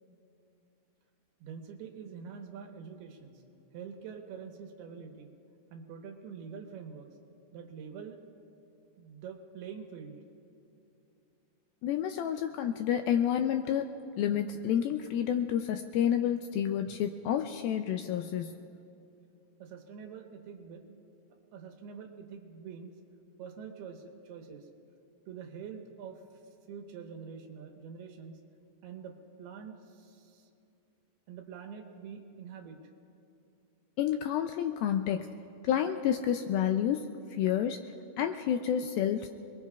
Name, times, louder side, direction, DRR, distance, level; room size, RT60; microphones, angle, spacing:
voice 1, 1.4-3.4 3.7-5.3 5.7-7.1 7.5-8.2 9.0-10.2 19.6-21.0 21.5-22.9 23.4-24.7 25.3-26.2 26.7-28.4 28.8-30.5 31.3-32.8, right 6 dB, 80° right, 3 dB, 3.1 m, -45 dB
voice 2, 11.8-18.5 34.0-35.3 35.6-37.1 37.4-37.8 38.2-39.3, left 9 dB, 85° left, 7 dB, 2.1 m, -29 dB
26.5 x 21.5 x 2.3 m, 2.7 s
omnidirectional pair, 4.6 m